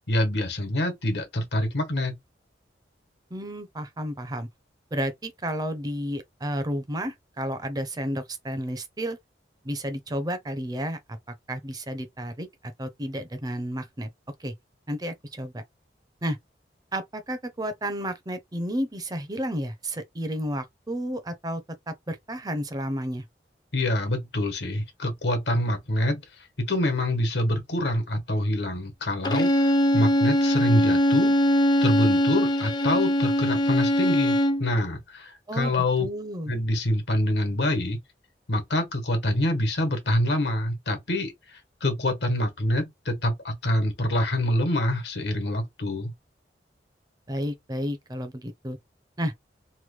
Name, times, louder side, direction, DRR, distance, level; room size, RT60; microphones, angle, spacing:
voice 1, 0.1-2.1 23.7-26.2 26.6-29.7 29.9-31.4 31.8-36.1 36.5-38.0 38.5-46.1, left 1 dB, 75° left, 1.2 m, -26 dB
voice 2, 3.3-4.5 4.9-9.2 9.6-11.2 11.5-12.5 12.8-14.1 14.4-14.5 14.9-15.6 16.2-16.4 16.9-21.6 21.9-23.2 35.5-36.5 47.3-48.8 49.2-49.3, equal, 20° right, 0.6 m, -31 dB
Bowed string instrument, 29.3-34.7, equal, 25° left, 0.4 m, -22 dB
3.1 x 2.2 x 3.2 m
head